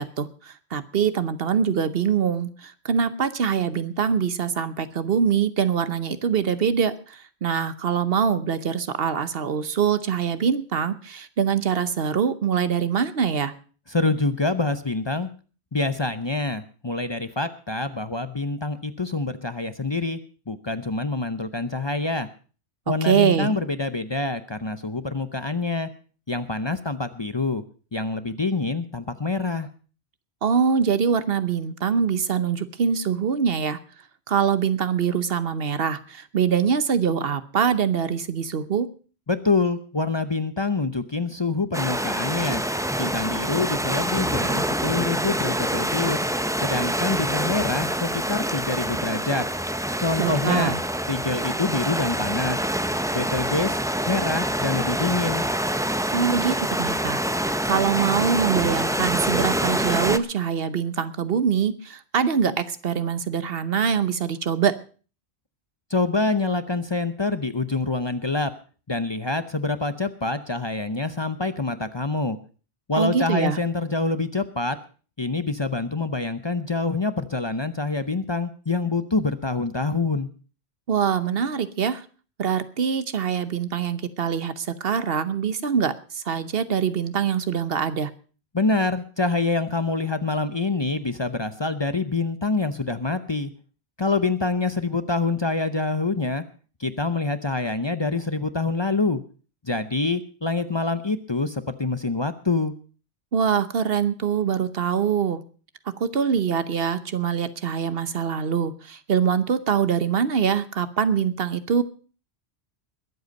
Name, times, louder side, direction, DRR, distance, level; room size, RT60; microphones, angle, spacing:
voice 1, 0.0-13.5 23.0-23.6 30.4-33.8 34.3-38.9 50.2-50.8 56.1-57.2 57.6-64.7 73.0-73.6 80.9-82.0 82.4-88.1 103.3-105.4 106.0-111.8, right 7 dB, 65° right, 13 dB, 1.1 m, -24 dB
voice 2, 13.9-15.3 15.7-20.2 20.5-22.3 22.9-25.9 26.3-27.6 27.9-29.7 39.3-42.6 43.0-46.2 46.6-49.4 50.0-50.7 51.1-52.6 53.1-53.8 54.1-55.5 65.9-68.5 68.9-72.4 72.9-74.8 75.2-80.3 88.5-93.5 94.0-96.4 96.8-99.2 99.7-102.7, left 3 dB, 30° left, 11 dB, 0.7 m, -26 dB
sound 1, 41.7-60.2, right 1 dB, 5° right, 0.4 m, -26 dB
21.5 x 8.0 x 5.2 m, 0.38 s
omnidirectional pair, 1.1 m